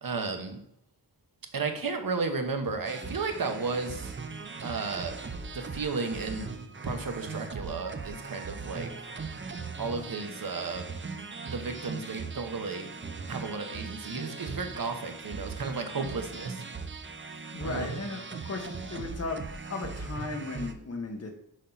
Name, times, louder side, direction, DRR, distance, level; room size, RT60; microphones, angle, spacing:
voice 1, 0.0-0.6 1.5-4.1 4.6-5.2 5.5-6.6 6.8-8.9 9.8-10.9 11.4-12.9 13.3-16.6 17.6-17.9, right 4 dB, 55° right, 6 dB, 1.1 m, -33 dB
sound 1, 2.8-20.7, right 4 dB, 30° right, 0.6 m, -39 dB
voice 2, 17.5-19.4 19.7-21.3, left 3 dB, 35° left, 3 dB, 1.2 m, -36 dB
6.5 x 5.5 x 3.9 m, 0.75 s
wide cardioid pair, 135°, 41 cm